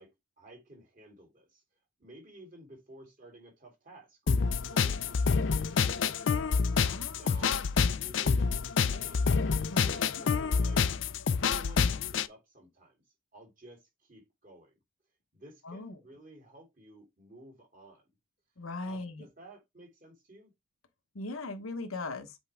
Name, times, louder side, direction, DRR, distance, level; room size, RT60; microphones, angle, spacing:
voice 1, 0.0-1.6 2.0-6.3 7.1-7.6 7.8-9.3 9.7-10.9 11.2-13.0 13.3-14.7 15.3-18.0 18.8-20.5, right 1 dB, 40° right, 3.4 m, -53 dB
sound 1, 4.3-12.3, left 5 dB, 60° left, 0.5 m, -27 dB
voice 2, 6.8-7.4 9.7-10.0 15.6-15.9 18.6-19.3 21.1-22.4, left 2 dB, 90° left, 1.1 m, -39 dB
8.1 x 4.5 x 3.5 m
head